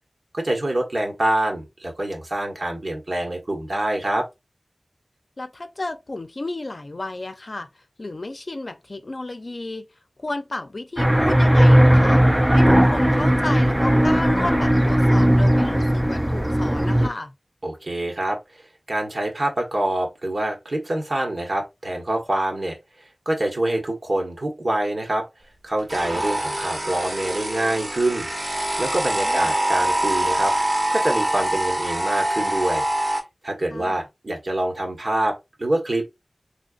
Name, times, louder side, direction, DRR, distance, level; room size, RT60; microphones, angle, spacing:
voice 1, 0.3-4.3 17.6-18.6 18.9-22.8 23.2-25.3 25.6-28.3 28.8-30.5 30.9-32.9 33.4-36.1, right 1 dB, 60° right, 1.5 m, -25 dB
voice 2, 5.4-7.7 8.0-9.9 10.2-17.3 29.2-29.6 33.7-34.1, left 2 dB, 60° left, 0.6 m, -32 dB
sound 1, 11.0-17.1, equal, 10° right, 0.5 m, -17 dB
sound 2, 25.9-33.2, right 1 dB, 45° right, 1.2 m, -24 dB
3.9 x 3.4 x 2.5 m
wide cardioid pair, 65°, 0 cm